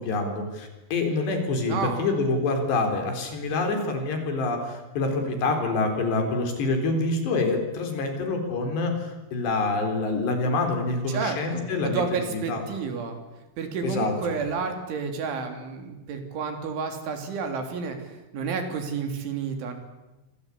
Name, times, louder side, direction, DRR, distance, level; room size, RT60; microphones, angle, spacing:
voice 1, 0.0-12.0 12.3-12.6 13.8-14.1, left 3 dB, 65° left, 5 dB, 6.0 m, -26 dB
voice 2, 1.7-2.1 11.1-13.2 13.6-19.7, right 5 dB, 80° right, 5 dB, 5.7 m, -30 dB
26.5 x 26.0 x 8.5 m, 1.1 s
omnidirectional pair, 5.4 m